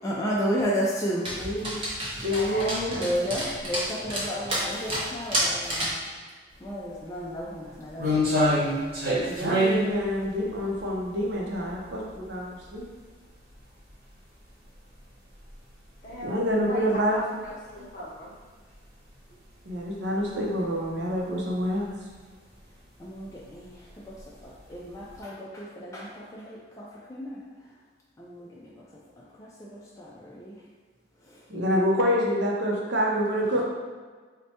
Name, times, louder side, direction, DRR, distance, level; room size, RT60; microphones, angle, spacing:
voice 1, 0.0-1.3 2.9-6.0 6.6-8.6 23.0-23.7 24.0-24.1 24.4-27.4 28.2-28.7 29.2-30.6 31.3-31.4, equal, 15° left, -6 dB, 0.3 m, -33 dB
Dog, 1.2-6.0, right 1 dB, 30° right, 0.6 m, -31 dB
voice 2, 1.3-1.7 2.2-3.0 9.3-12.9 16.2-17.2 19.7-21.9 31.5-33.6, equal, 65° right, -2 dB, 0.6 m, -27 dB
voice 3, 2.2-2.9 16.0-16.4 16.6-18.3, equal, 40° left, -5 dB, 0.8 m, -37 dB
sound 1, 6.6-6.7 7.2-12.3 12.6-12.8 13.5-13.6 13.9-14.0 15.0-15.1 15.4-15.5 16.1-16.2 16.5-16.6 18.7-18.8 20.1-20.4 20.8-21.2 21.6-21.8 22.1-22.2 23.3-23.5 24.1-24.8 25.1-25.2, equal, 50° right, 1.0 m, -26 dB
4.3 x 2.2 x 2.8 m, 1.5 s
head